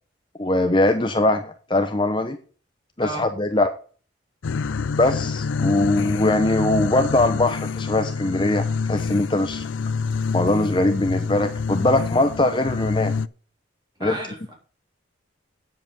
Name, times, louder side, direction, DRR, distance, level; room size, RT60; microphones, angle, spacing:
voice 1, 0.4-2.4 3.0-3.7 5.0-9.7 10.3-13.1 14.0-14.2, left 2 dB, 25° left, 7 dB, 0.8 m, -21 dB
sound 1, 4.4-13.3, left 5 dB, 80° left, 0.4 m, -27 dB
voice 2, 14.0-14.5, right 1 dB, 20° right, 0 dB, 3.8 m, -32 dB
9.4 x 7.8 x 5.4 m, 0.40 s
head